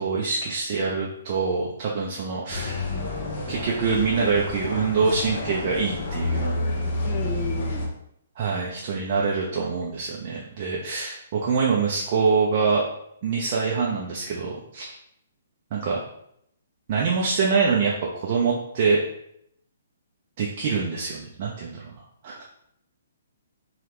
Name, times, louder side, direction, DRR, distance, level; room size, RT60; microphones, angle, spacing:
voice 1, 0.0-2.8 3.5-6.5 8.4-12.8 13.2-14.9 15.7-16.0 16.9-19.0 20.4-21.9 22.2-22.4, right 5 dB, 40° right, -3 dB, 0.5 m, -25 dB
sound 1, 2.5-7.9, left 2 dB, 45° left, 0.8 m, -29 dB
voice 2, 7.0-7.9, left 5 dB, 25° left, 1 dB, 0.4 m, -32 dB
3.3 x 2.3 x 3.1 m, 0.74 s
figure-of-eight pair, 125°, 0 cm